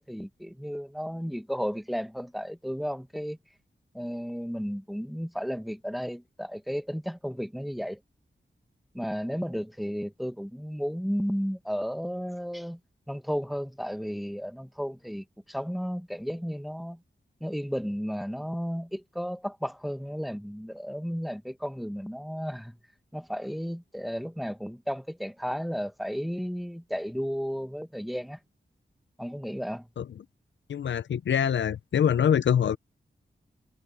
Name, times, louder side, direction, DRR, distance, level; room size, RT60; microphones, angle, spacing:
voice 1, 0.0-3.4 3.9-8.0 8.9-12.8 13.1-17.0 17.4-22.8 23.1-28.4 29.2-29.9, equal, ahead, 1.4 m, -33 dB
voice 2, 30.7-32.8, left 8 dB, 90° left, 0.6 m, -24 dB
wide cardioid pair, 115°, 19 cm